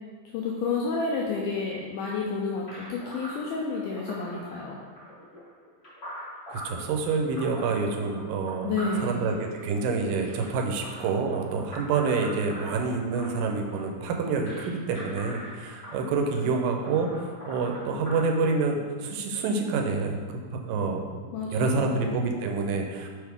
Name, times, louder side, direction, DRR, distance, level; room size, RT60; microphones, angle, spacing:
voice 1, 0.3-4.8 8.6-9.3 21.3-22.1, left 4 dB, 80° left, -2 dB, 1.9 m, -30 dB
sound 1, 2.7-18.2, equal, 30° left, 1.1 m, -42 dB
voice 2, 6.5-8.8 9.0-21.2 21.5-23.1, right 4 dB, 85° right, 3 dB, 2.4 m, -27 dB
6.3 x 4.6 x 3.5 m, 1.5 s
omnidirectional pair, 4.0 m